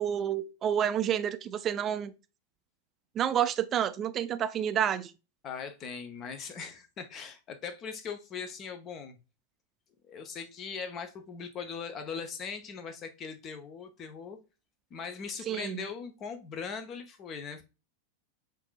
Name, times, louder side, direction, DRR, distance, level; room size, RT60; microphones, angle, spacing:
voice 1, 0.0-2.1 3.2-5.1 15.5-15.8, right 9 dB, 30° right, 0.4 m, -29 dB
voice 2, 5.4-9.2 10.1-14.4 14.9-17.6, left 6 dB, 30° left, 0.8 m, -40 dB
5.7 x 2.7 x 2.3 m
figure-of-eight pair, 90°, 0 cm